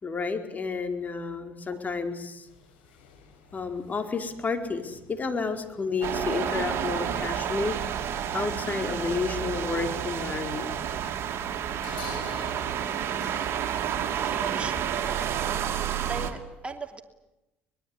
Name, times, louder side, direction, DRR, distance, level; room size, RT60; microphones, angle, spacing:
voice 1, 0.0-2.5 3.5-7.8 8.3-10.8, left 4 dB, 30° left, 6 dB, 4.6 m, -31 dB
sound 1, 2.5-13.4, left 6 dB, 90° left, 4.7 m, -49 dB
sound 2, 6.0-16.3, right 9 dB, 55° right, 3.0 m, -30 dB
voice 2, 14.1-15.3 16.0-17.0, right 3 dB, 20° right, 5 dB, 2.8 m, -38 dB
24.5 x 21.0 x 9.8 m, 0.94 s
hypercardioid pair, 65°, 5 cm